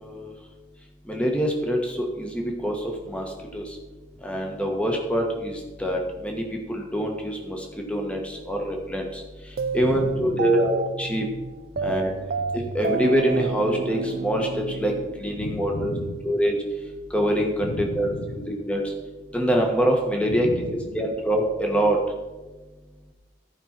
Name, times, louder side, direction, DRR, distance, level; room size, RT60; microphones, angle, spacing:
voice 1, 1.1-2.7 3.1-3.2 3.5-3.6 4.2-5.5 5.8-6.4 6.7-7.6 7.9-8.2 8.5-9.0 9.7-11.2 11.8-12.1 12.5-14.9 15.2-15.9 16.2-16.5 17.1-18.8 19.3-20.5 20.9-22.0, equal, 5° left, 1 dB, 1.3 m, -24 dB
sound 1, 9.6-15.7, right 5 dB, 50° right, 0.3 m, -31 dB
voice 2, 9.7-10.7 11.8-12.7 15.3-16.4 17.6-18.6 20.2-21.2, left 2 dB, 75° left, 8 dB, 0.7 m, -36 dB
15.0 x 5.4 x 4.4 m, 1.2 s
head